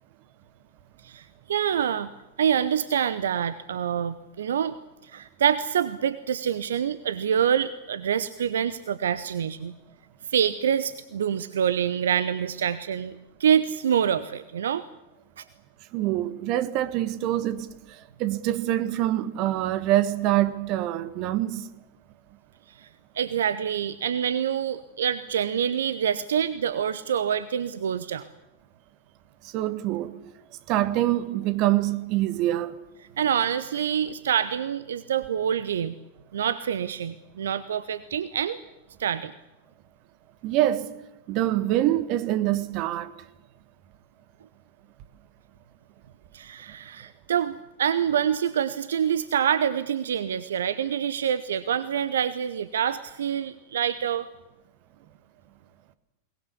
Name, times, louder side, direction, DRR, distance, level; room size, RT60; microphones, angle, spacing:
voice 1, 1.0-2.1 2.4-4.7 5.0-9.7 10.3-14.8 15.4-15.5 22.7-22.9 23.1-28.3 33.2-35.9 36.3-38.6 39.0-39.3 46.3-54.3, right 8 dB, 65° right, 0.8 m, -26 dB
voice 2, 15.9-21.6 29.4-30.1 30.7-32.7 40.4-40.9 41.3-43.1, right 14 dB, 40° right, 1.5 m, -25 dB
22.0 x 20.0 x 8.3 m
figure-of-eight pair, 90°, 0 cm